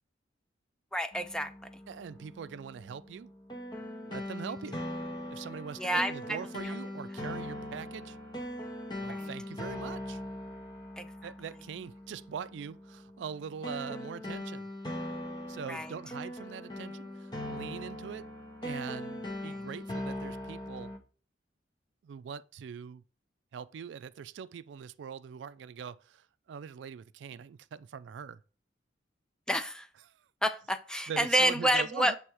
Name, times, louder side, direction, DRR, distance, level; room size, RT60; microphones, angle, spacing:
voice 1, 0.9-1.5 5.8-6.1 6.6-6.7 9.1-9.3 11.0-11.3 15.7-15.9 29.5-29.9 30.4-32.2, equal, 5° left, 0.4 m, -29 dB
sound 1, 1.1-21.0, left 1 dB, 25° left, 0.9 m, -41 dB
voice 2, 1.9-3.3 4.0-4.8 5.3-8.2 9.0-10.2 11.2-14.7 15.5-18.3 18.6-20.9 22.0-23.0 23.5-28.4 30.1-30.2 31.1-32.2, right 7 dB, 70° right, 0.3 m, -42 dB
7.7 x 3.4 x 4.6 m
head